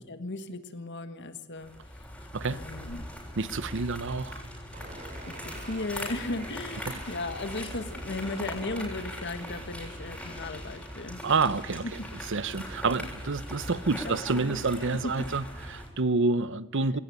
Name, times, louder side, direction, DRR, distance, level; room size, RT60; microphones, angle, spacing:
voice 1, 0.1-2.1 2.5-3.1 5.3-11.2 11.8-12.1 14.0-15.3, left 2 dB, 55° left, 1.5 m, -36 dB
sound 1, 1.6-15.9, left 1 dB, 5° left, 6.8 m, -40 dB
voice 2, 3.4-4.4 6.9-7.0 11.2-11.9 12.3-17.0, right 3 dB, 60° right, 0.8 m, -28 dB
sound 2, 4.7-13.4, right 2 dB, 35° right, 4.5 m, -50 dB
20.5 x 18.0 x 9.9 m
head